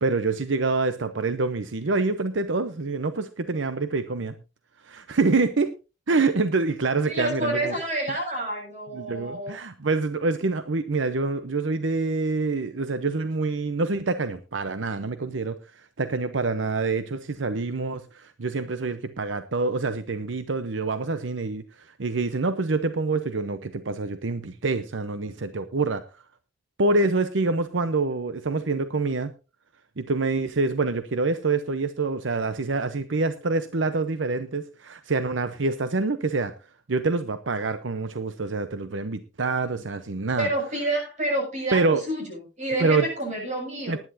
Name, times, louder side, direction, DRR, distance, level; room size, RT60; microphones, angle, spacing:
voice 1, 0.0-4.4 4.8-5.7 6.1-7.7 8.9-15.6 16.0-21.6 22.0-26.0 26.8-29.3 30.0-36.5 36.9-40.5 41.7-42.0 42.8-43.1 43.9-44.0, right 3 dB, 85° right, 11 dB, 0.8 m, -26 dB
voice 2, 7.1-9.6 40.4-44.0, right 1 dB, 40° right, 1 dB, 7.4 m, -29 dB
19.0 x 11.0 x 2.7 m, 0.30 s
head